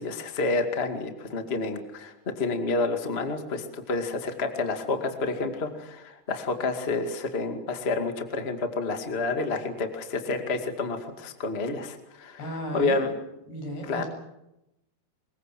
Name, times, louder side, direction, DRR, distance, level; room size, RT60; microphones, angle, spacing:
voice 1, 0.0-12.4 12.7-13.1 13.9-14.0, left 3 dB, 30° left, 6 dB, 1.2 m, -29 dB
voice 2, 12.4-13.0 13.5-14.1, equal, 70° left, 3 dB, 9.1 m, -34 dB
25.0 x 21.5 x 7.7 m, 0.88 s
omnidirectional pair, 4.8 m